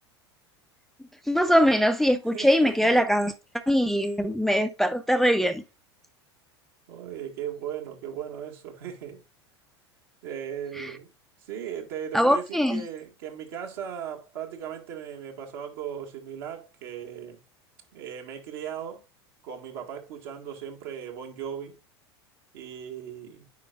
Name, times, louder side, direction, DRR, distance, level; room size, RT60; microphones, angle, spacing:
voice 1, 1.3-3.3 3.7-5.6 10.8-10.9 12.1-12.8, equal, ahead, 0.5 m, -22 dB
voice 2, 2.3-3.1 6.9-9.2 10.2-11.1 11.4-17.4 17.9-19.0 19.4-21.8 22.5-23.5, right 9 dB, 65° right, 1.8 m, -37 dB
9.4 x 4.9 x 2.4 m
figure-of-eight pair, 80°, 14 cm